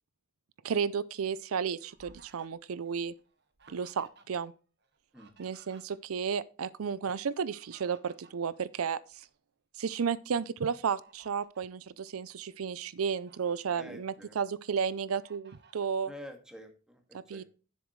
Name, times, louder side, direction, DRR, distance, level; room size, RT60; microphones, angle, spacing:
voice 1, 0.6-3.1 3.7-4.5 5.4-9.3 9.8-16.1 17.1-17.4, right 6 dB, 90° right, 0.5 m, -33 dB
Fowl, 1.2-4.5 4.8-6.3 7.2-9.3 9.8-10.0 10.6-11.7 12.3-12.4 12.8-13.6 14.1-14.8 15.2-15.9, right 4 dB, 55° right, 1.5 m, -60 dB
voice 2, 13.7-14.4 16.1-17.4, left 1 dB, 5° right, 1.9 m, -48 dB
10.5 x 7.4 x 3.1 m
head